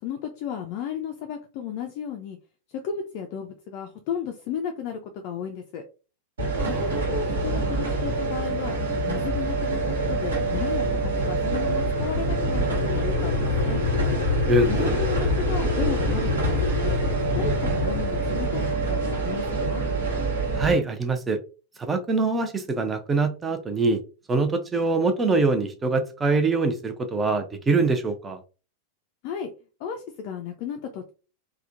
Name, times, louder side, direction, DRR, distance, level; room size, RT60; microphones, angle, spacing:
voice 1, 0.0-2.4 2.7-5.8 6.6-9.8 10.1-13.8 14.7-17.0 17.4-19.8 29.2-29.5 29.8-31.1, left 7 dB, 45° left, 4 dB, 0.4 m, -34 dB
sound 1, 6.4-20.7, right 1 dB, 65° right, 1.3 m, -25 dB
voice 2, 6.5-7.0 14.5-14.9 20.6-21.4 21.8-24.0 24.3-28.4, right 3 dB, 15° right, 6 dB, 0.6 m, -24 dB
3.4 x 2.2 x 2.5 m, 0.34 s
figure-of-eight pair, 90°, 0 cm